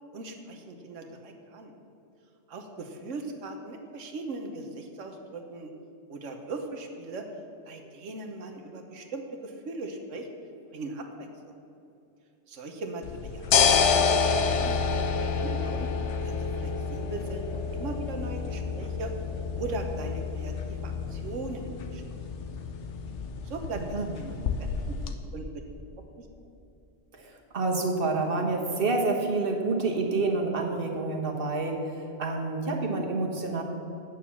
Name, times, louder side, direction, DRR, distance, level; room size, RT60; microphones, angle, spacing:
voice 1, 0.1-1.7 2.5-5.7 6.1-7.3 7.6-10.3 10.7-11.5 12.5-15.9 16.2-19.1 19.5-22.0 23.4-25.0 25.3-25.6 26.2-26.3, right 2 dB, 90° right, 4 dB, 1.3 m, -39 dB
sound 1, 13.0-25.1, left 6 dB, 75° left, 1.0 m, -29 dB
voice 2, 27.1-33.6, right 3 dB, 50° right, 1 dB, 1.4 m, -28 dB
9.1 x 6.8 x 7.0 m, 2.7 s
omnidirectional pair, 1.2 m